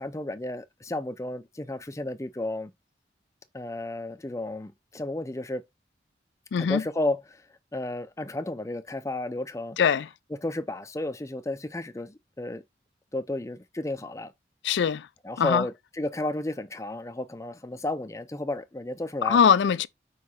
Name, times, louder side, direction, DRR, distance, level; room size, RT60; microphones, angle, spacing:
voice 1, 0.0-2.7 3.5-5.6 6.6-7.4 7.7-9.8 10.4-12.6 13.1-14.3 15.2-19.4, left 2 dB, 15° left, 0.5 m, -32 dB
voice 2, 6.5-6.8 9.8-10.1 14.6-15.1 15.4-15.7 19.2-19.9, left 7 dB, 80° left, 0.4 m, -22 dB
4.9 x 4.7 x 4.2 m
head